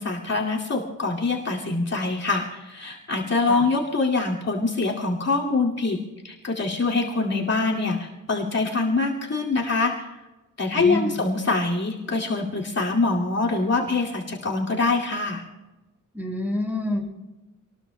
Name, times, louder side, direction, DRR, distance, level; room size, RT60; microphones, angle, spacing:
voice 1, 0.0-6.0 6.2-10.2 10.6-15.4, left 3 dB, 50° left, -3 dB, 2.4 m, -24 dB
voice 2, 10.7-11.2 16.1-17.0, left 1 dB, 5° right, -1 dB, 5.5 m, -27 dB
27.5 x 20.5 x 2.2 m, 1.1 s
wide cardioid pair, 160°, 33 cm